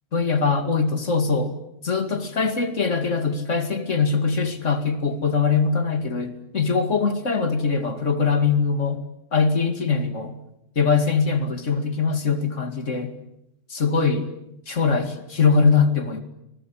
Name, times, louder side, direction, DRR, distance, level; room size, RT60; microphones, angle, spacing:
voice 1, 0.1-1.5 1.8-9.0 9.3-10.3 10.8-13.1 13.7-14.3 14.7-16.2, left 5 dB, 70° left, 8 dB, 2.7 m, -22 dB
26.0 x 21.0 x 9.9 m, 0.83 s
omnidirectional pair, 1.3 m